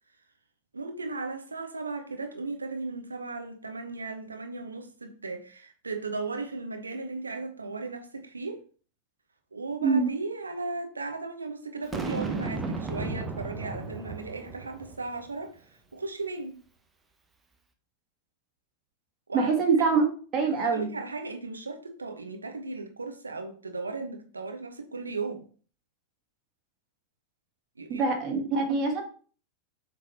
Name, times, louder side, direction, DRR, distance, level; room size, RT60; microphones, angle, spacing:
voice 1, 0.7-8.6 9.5-16.6 19.3-19.5 20.5-25.5 27.8-28.1, right 3 dB, 75° right, 1.2 m, -36 dB
Boom, 11.9-15.2, right 3 dB, 10° right, 1.0 m, -34 dB
voice 2, 19.3-20.0 20.3-20.9 27.9-29.0, right 4 dB, 35° right, 2.3 m, -24 dB
7.6 x 4.0 x 4.4 m
figure-of-eight pair, 90°, 0 cm